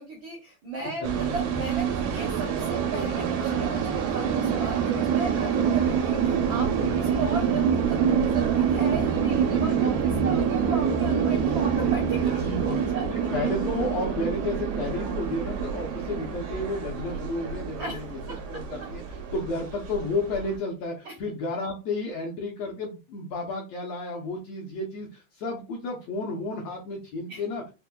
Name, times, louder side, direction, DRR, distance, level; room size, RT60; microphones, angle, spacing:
voice 1, 0.0-13.5 17.8-18.4 21.0-21.1 27.3-27.4, right 3 dB, 75° right, -2 dB, 1.1 m, -36 dB
voice 2, 1.0-1.4 6.8-6.9 9.4-10.6 12.0-12.1 12.4-27.6, left 2 dB, 70° left, 0 dB, 1.7 m, -32 dB
sound 1, 1.0-20.6, right 7 dB, 90° right, 2.3 m, -26 dB
5.7 x 2.1 x 2.2 m, 0.28 s
omnidirectional pair, 3.6 m